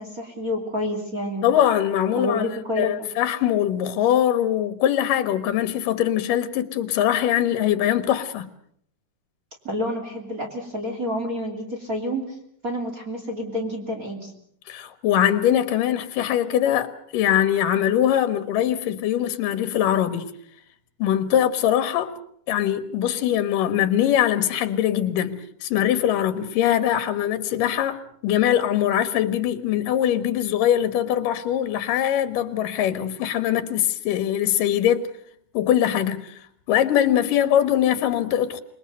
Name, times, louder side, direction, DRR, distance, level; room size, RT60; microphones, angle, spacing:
voice 1, 0.0-1.5 2.1-3.1 9.6-12.2 12.6-14.3, left 1 dB, 25° right, 3.0 m, -29 dB
voice 2, 1.4-2.5 2.8-8.5 14.7-20.3 21.0-22.1 22.5-35.1 35.5-36.4 36.7-38.6, left 11 dB, 80° left, 2.9 m, -22 dB
26.5 x 21.0 x 6.7 m
omnidirectional pair, 3.8 m